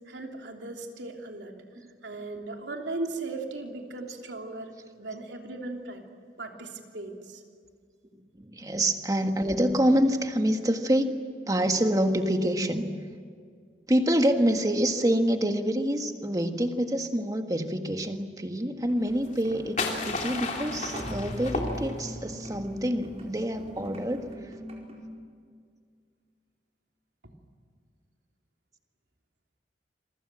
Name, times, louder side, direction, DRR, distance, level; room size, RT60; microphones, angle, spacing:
voice 1, 0.1-1.5 2.0-4.7 5.0-6.0 6.4-7.4 27.2-27.3, right 2 dB, 75° right, 2 dB, 3.2 m, -37 dB
voice 2, 8.1-11.1 11.5-12.9 13.9-24.3, equal, 20° right, 5 dB, 1.7 m, -26 dB
sound 1, 18.9-25.1, equal, 35° right, 4.5 m, -40 dB
sound 2, 19.2-22.3, left 3 dB, 40° left, 3.4 m, -33 dB
28.0 x 23.5 x 7.6 m, 2.1 s
head